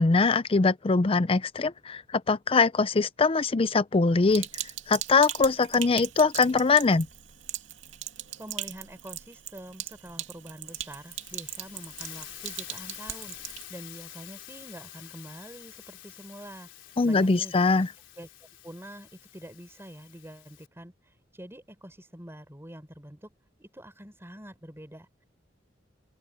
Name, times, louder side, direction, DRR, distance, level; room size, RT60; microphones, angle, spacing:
voice 1, 0.0-4.5 4.9-7.1 17.0-17.9, left 4 dB, 30° left, 0.5 m, -22 dB
Sink (filling or washing), 4.3-13.6, right 12 dB, 85° right, 2.5 m, -39 dB
voice 2, 8.4-17.5 18.2-18.3 18.6-23.3 23.6-25.2, equal, 15° right, 4.3 m, -46 dB
Hiss, 10.7-20.7, left 12 dB, 85° left, 3.5 m, -47 dB
open air
head